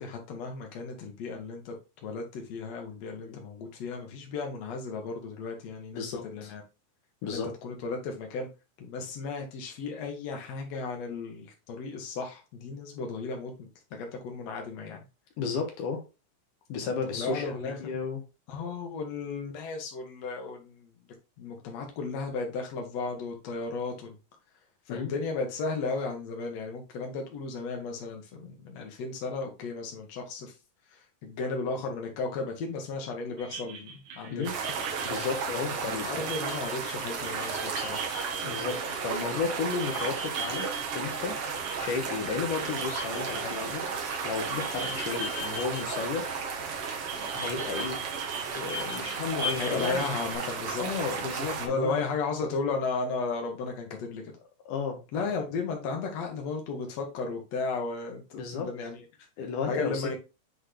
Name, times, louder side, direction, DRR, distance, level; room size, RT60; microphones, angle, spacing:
voice 1, 0.0-6.6 7.2-8.5 8.8-15.0 16.8-18.0 18.5-20.9 21.4-24.2 24.9-30.5 30.9-34.8 35.7-38.1 49.5-50.9 51.6-54.3 55.1-59.3 59.7-60.2, left 4 dB, 60° left, 2 dB, 2.5 m, -35 dB
voice 2, 6.0-6.5 7.2-7.5 15.4-16.0 16.7-18.2 24.9-25.1 34.3-34.5 35.0-36.2 38.4-40.7 40.9-41.4 41.8-46.4 47.3-48.0 48.5-50.1 50.8-52.0 54.7-55.0 58.3-58.7 59.4-60.2, left 5 dB, 85° left, 2 dB, 2.8 m, -33 dB
sound 1, 33.4-46.5 46.9-50.3, right 2 dB, 75° right, 2.9 m, -40 dB
sound 2, 34.4-51.7, right 5 dB, 55° right, 1.8 m, -34 dB
8.1 x 3.9 x 3.4 m, 0.28 s
omnidirectional pair, 3.6 m